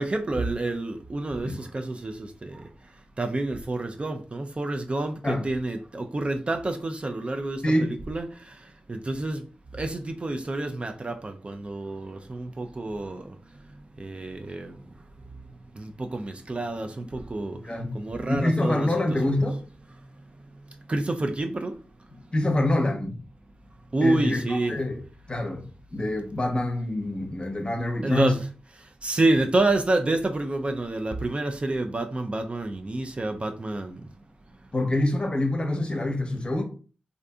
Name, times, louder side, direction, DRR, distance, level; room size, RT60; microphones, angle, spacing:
voice 1, 0.0-2.6 3.2-8.3 8.9-9.4 9.8-13.3 14.0-14.7 15.8-17.6 17.9-18.9 20.9-21.7 23.9-24.8 28.0-28.5 29.0-34.0, right 2 dB, 35° right, 0.4 m, -28 dB
voice 2, 7.6-8.0 17.6-18.0 18.3-19.6 22.1-23.2 24.0-24.4 24.7-25.0 25.3-28.3 34.7-36.6, left 1 dB, 30° left, 0.7 m, -26 dB
2.6 x 2.4 x 2.3 m
cardioid pair, 40°, 3 cm